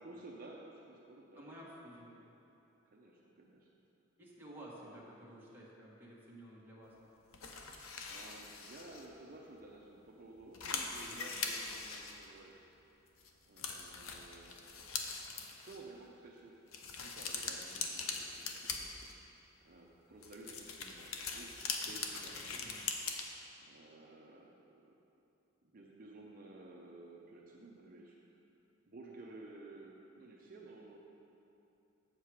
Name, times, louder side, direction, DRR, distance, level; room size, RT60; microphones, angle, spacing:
voice 1, 0.0-1.7 2.9-3.7 4.8-5.0 8.1-12.5 13.5-14.6 15.6-16.5 17.0-19.3 19.6-22.7 23.6-24.9 25.6-28.2 28.8-31.0, right 2 dB, 45° right, -3 dB, 0.6 m, -54 dB
voice 2, 1.3-2.2 4.2-7.0 11.0-11.2 22.5-22.8, right 1 dB, 10° right, -6 dB, 1.4 m, -53 dB
sound 1, 7.3-9.1 9.6-9.7 10.1-10.2 10.4-12.7 13.2-13.3 13.6-15.8 16.7-19.3 20.2-23.2, left 5 dB, 90° left, 0.7 m, -42 dB
7.5 x 7.4 x 4.8 m, 2.9 s
head